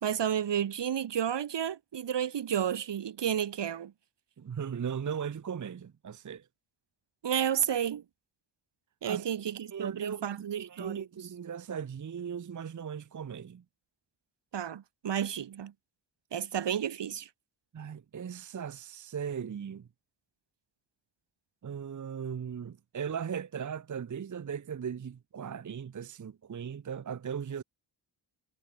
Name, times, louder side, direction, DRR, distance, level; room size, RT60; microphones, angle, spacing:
voice 1, 0.0-3.9 7.2-8.0 9.0-11.1 14.5-15.7 16.3-17.3, right 9 dB, 60° right, 1.2 m, -31 dB
voice 2, 4.4-6.4 9.0-9.2 9.7-13.6 17.7-19.9 21.6-27.6, right 7 dB, 40° right, 0.8 m, -38 dB
cardioid pair, 70°, 48 cm